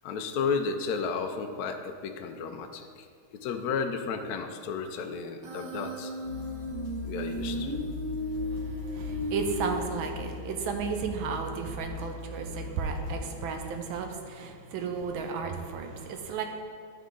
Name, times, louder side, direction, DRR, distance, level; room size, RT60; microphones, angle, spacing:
voice 1, 0.0-3.1 3.3-6.1 7.0-7.7, left 5 dB, 80° left, 6 dB, 0.8 m, -33 dB
Human voice, 5.4-10.4, equal, 60° right, 1.8 m, -35 dB
sound 1, 6.2-13.6, left 3 dB, 65° left, 1.6 m, -40 dB
voice 2, 8.4-16.4, right 5 dB, 80° right, 5 dB, 1.4 m, -34 dB
10.5 x 3.7 x 3.7 m, 2.2 s
omnidirectional pair, 2.2 m